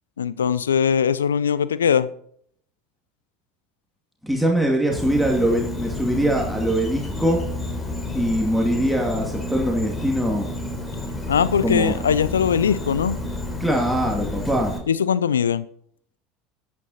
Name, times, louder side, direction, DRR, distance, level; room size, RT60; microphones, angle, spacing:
voice 1, 0.2-2.1 11.3-13.2 14.9-15.6, left 7 dB, 80° left, 0.6 m, -20 dB
voice 2, 4.2-7.4 8.1-10.5 11.6-12.0 13.6-14.7, equal, ahead, 2.5 m, -22 dB
Insect, 4.9-14.8, left 1 dB, 20° left, 3.7 m, -30 dB
14.0 x 9.7 x 4.2 m
figure-of-eight pair, 75°, 0 cm